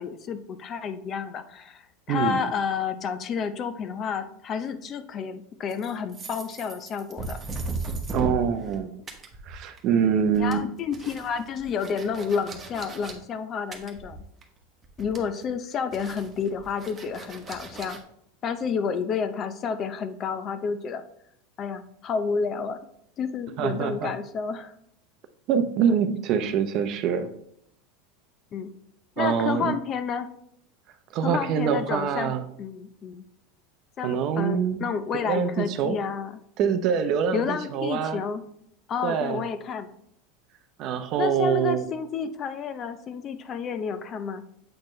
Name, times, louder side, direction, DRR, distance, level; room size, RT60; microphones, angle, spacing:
voice 1, 0.0-7.4 10.4-14.2 15.0-18.0 18.4-21.0 21.6-22.8 23.2-24.7 28.5-28.7 29.2-30.3 31.2-33.2 34.0-36.3 36.6-36.8 37.3-38.4 38.9-39.9 41.2-44.4, left 6 dB, 35° left, 10 dB, 0.5 m, -30 dB
voice 2, 2.1-2.4 8.1-8.9 9.4-10.7 23.6-24.1 25.5-27.3 29.2-29.8 31.1-32.4 34.0-34.8 35.1-36.0 36.6-38.2 39.0-39.4 40.8-41.8, right 7 dB, 50° right, 10 dB, 0.6 m, -25 dB
sound 1, 5.7-8.8 9.1-9.9 10.2-13.1 13.7-14.6 14.8-15.4 15.9-18.0, right 3 dB, 25° right, 1.0 m, -36 dB
7.7 x 4.3 x 3.2 m, 0.71 s
supercardioid pair, 120°, 0 cm